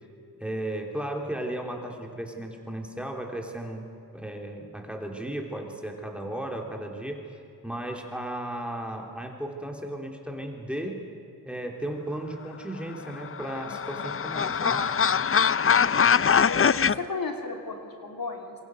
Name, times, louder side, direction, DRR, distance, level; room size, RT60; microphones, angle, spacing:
voice 1, 0.4-7.3 7.6-11.0 11.4-14.9, right 1 dB, 5° right, 1 dB, 3.6 m, -35 dB
sound 1, 13.1-16.9, left 7 dB, 40° left, 0.5 m, -23 dB
voice 2, 14.6-15.0 16.3-18.6, left 3 dB, 75° left, 2 dB, 2.9 m, -33 dB
27.0 x 23.5 x 6.4 m, 2.6 s
cardioid pair, 55°, 35 cm